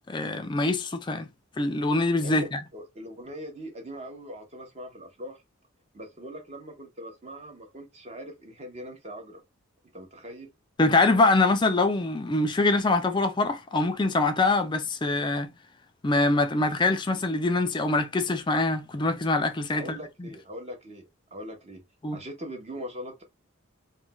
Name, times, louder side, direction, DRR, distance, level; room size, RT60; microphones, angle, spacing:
voice 1, 0.1-1.3 1.6-2.6 10.8-15.5 16.0-20.3 22.0-22.2, left 2 dB, 20° left, 0.4 m, -24 dB
voice 2, 2.2-5.4 5.9-9.4 9.9-10.5 19.7-21.0 21.3-21.8 22.1-23.2, equal, 30° right, 0.7 m, -41 dB
2.3 x 2.2 x 3.8 m
head